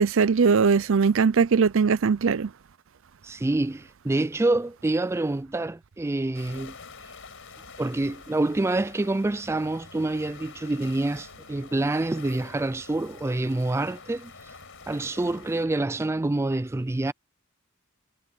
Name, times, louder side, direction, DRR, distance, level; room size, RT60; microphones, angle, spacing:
voice 1, 0.0-2.5, right 5 dB, 65° right, 0.5 m, -20 dB
voice 2, 3.2-6.8 7.8-14.5 14.9-17.1, right 2 dB, 10° right, 0.3 m, -27 dB
sound 1, 6.3-15.7, left 5 dB, 65° left, 5.8 m, -47 dB
head